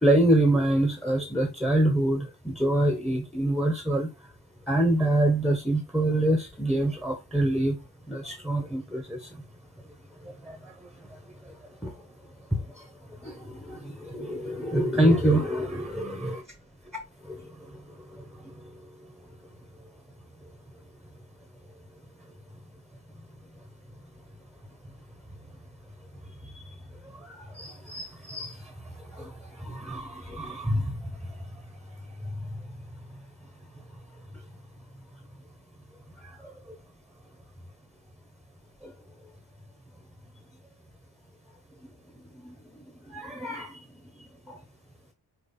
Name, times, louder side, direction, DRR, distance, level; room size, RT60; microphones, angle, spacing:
voice 1, 0.0-4.3 4.7-7.8 8.1-9.4 10.2-11.5 11.8-16.4 17.2-19.1 26.3-26.7 27.0-32.6 33.1-33.2 33.7-33.8 34.3-34.4 36.2-36.8 38.8-38.9 41.8-43.9 44.2-44.6, right 1 dB, ahead, 0.9 m, -28 dB
5.5 x 4.4 x 4.1 m
wide cardioid pair, 145°, 40 cm